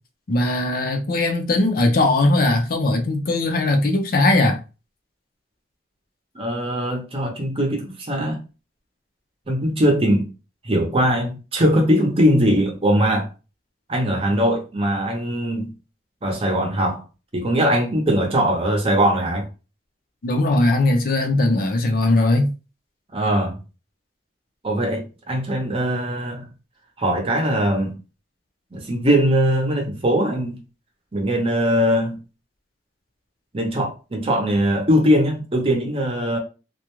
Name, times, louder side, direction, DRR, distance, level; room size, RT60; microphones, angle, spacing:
voice 1, 0.3-4.6 20.2-22.5, left 2 dB, 55° left, 0.5 m, -19 dB
voice 2, 6.3-8.4 9.5-10.3 10.6-13.3 13.9-15.7 16.2-17.0 17.3-19.5 23.1-23.6 24.6-26.5 27.0-28.0 28.7-30.6 31.1-32.2 33.5-36.4, equal, 35° right, 0.7 m, -21 dB
2.4 x 2.1 x 3.0 m
head